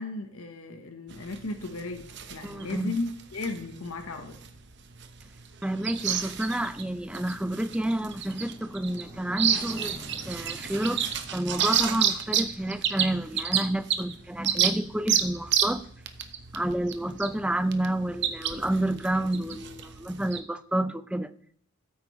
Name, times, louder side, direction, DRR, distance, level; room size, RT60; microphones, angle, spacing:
voice 1, 0.0-2.0 2.3-4.4, left 2 dB, 90° left, 1.0 m, -35 dB
sound 1, 1.1-20.4, right 8 dB, 55° right, 0.9 m, -31 dB
voice 2, 2.4-3.0 5.6-10.0 10.3-11.0 11.3-15.8 16.5-21.3, right 1 dB, 5° right, 0.4 m, -29 dB
Motorcycle, 7.4-15.4, equal, 10° left, 4.6 m, -50 dB
14.0 x 8.4 x 3.1 m
head